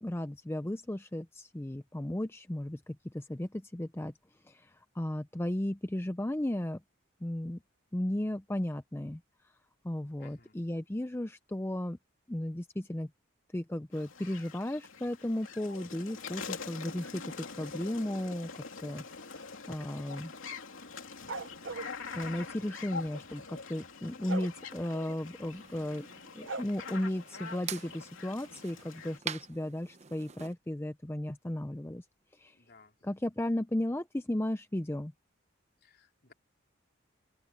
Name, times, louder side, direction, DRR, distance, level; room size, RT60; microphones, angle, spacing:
voice 1, 0.0-4.1 4.5-6.8 7.2-7.6 7.9-9.2 9.8-12.0 12.3-13.1 13.5-20.3 22.2-26.1 26.3-32.0 32.3-32.6 33.0-35.1, left 1 dB, 10° left, 0.5 m, -35 dB
voice 2, 10.2-10.6 32.5-33.1 35.8-36.3, left 4 dB, 50° left, 3.9 m, -60 dB
sound 1, 13.9-29.2, left 5 dB, 75° left, 3.0 m, -45 dB
sound 2, 21.3-21.9 24.3-24.5 26.5-26.6, right 3 dB, 65° right, 1.0 m, -37 dB
sound 3, 25.4-30.5, right 7 dB, 35° right, 0.9 m, -45 dB
open air
head